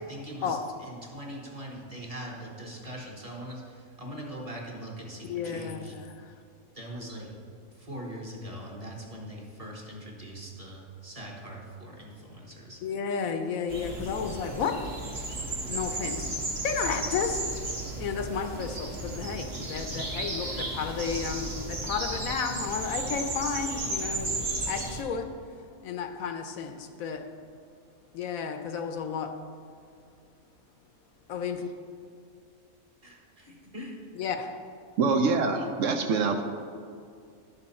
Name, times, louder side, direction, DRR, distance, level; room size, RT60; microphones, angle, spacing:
voice 1, 0.1-5.9 6.7-7.3 7.7-12.8 33.0-34.0, right 1 dB, 25° right, 1.4 m, -41 dB
voice 2, 5.3-6.4 12.8-14.9 15.6-16.3 16.6-17.4 18.0-24.4 24.7-25.4 25.8-27.3 28.1-29.4 31.3-31.7 34.2-34.6, left 6 dB, 75° left, 1.1 m, -32 dB
sound 1, 13.7-25.0, right 2 dB, 45° right, 1.5 m, -34 dB
voice 3, 35.0-36.4, right 4 dB, 70° right, 0.9 m, -25 dB
11.0 x 6.8 x 4.2 m
omnidirectional pair, 1.5 m